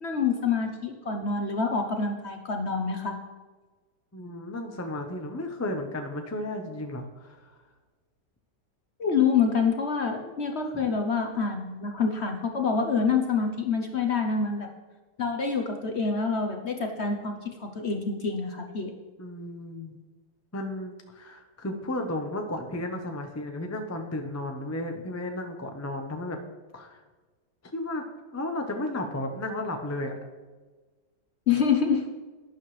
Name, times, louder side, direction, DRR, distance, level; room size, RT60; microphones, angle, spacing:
voice 1, 0.0-3.2 9.0-14.7 15.2-18.9 31.5-32.0, left 5 dB, 50° left, 4 dB, 0.9 m, -26 dB
voice 2, 4.1-7.6 10.7-10.9 19.2-20.0 20.5-26.4 26.7-27.0 27.7-28.0 28.3-30.1, left 1 dB, 15° left, 4 dB, 0.5 m, -34 dB
12.0 x 10.0 x 3.3 m, 1.3 s
omnidirectional pair, 1.9 m